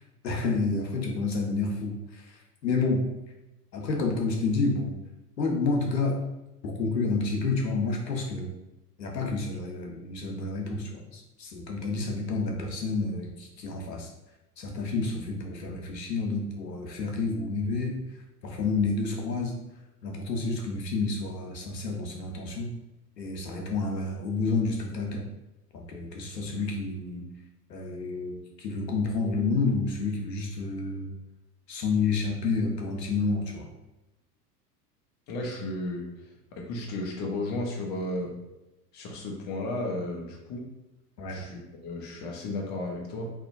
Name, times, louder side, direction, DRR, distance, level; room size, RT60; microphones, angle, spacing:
voice 1, 0.2-2.0 2.6-3.0 3.7-4.9 5.4-6.2 6.6-8.5 9.0-14.1 14.6-18.0 18.4-19.6 20.0-22.7 23.2-25.2 25.9-27.3 27.7-31.1 31.7-33.7 41.2-41.4, left 3 dB, 90° left, 1 dB, 0.6 m, -29 dB
voice 2, 35.3-36.1 36.5-38.3 38.9-40.7 41.3-43.3, left 2 dB, 25° left, 0 dB, 0.3 m, -34 dB
2.5 x 2.1 x 2.5 m, 0.99 s
figure-of-eight pair, 85°, 48 cm